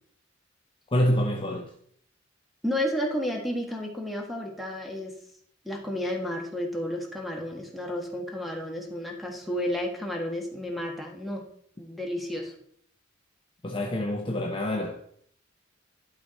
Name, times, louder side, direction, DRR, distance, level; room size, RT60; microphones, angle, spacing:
voice 1, 0.9-1.7 13.6-15.0, equal, 25° left, 0.8 m, -26 dB
voice 2, 2.6-5.1 5.6-11.4 11.8-12.5, left 1 dB, ahead, 1.7 m, -32 dB
11.5 x 4.7 x 4.3 m
head